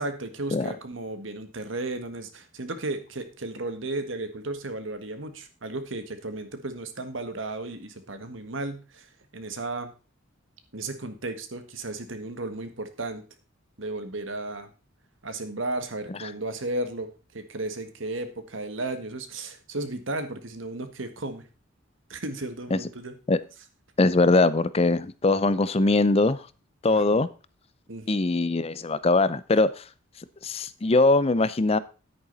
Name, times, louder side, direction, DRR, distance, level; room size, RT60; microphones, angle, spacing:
voice 1, 0.0-9.9 10.7-13.2 13.8-14.7 15.2-21.4 22.1-23.2 26.9-27.3 27.9-28.3, right 2 dB, 70° right, 1.7 m, -34 dB
voice 2, 24.0-26.4 26.8-27.3 28.1-29.8 30.4-31.8, left 2 dB, 30° left, 0.5 m, -21 dB
10.0 x 8.9 x 4.0 m
head